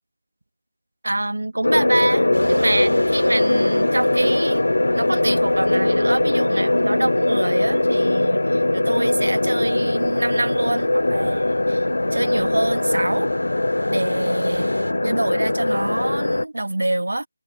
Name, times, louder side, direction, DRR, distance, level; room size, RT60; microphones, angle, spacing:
voice 1, 1.0-4.6 4.9-13.3 13.9-14.7 15.0-17.3, right 2 dB, 70° right, 1.5 m, -25 dB
sound 1, 1.6-16.4, left 2 dB, 70° left, 0.4 m, -21 dB
sound 2, 2.3-14.9, right 1 dB, 90° right, 4.2 m, -40 dB
figure-of-eight pair, 160°, 0 cm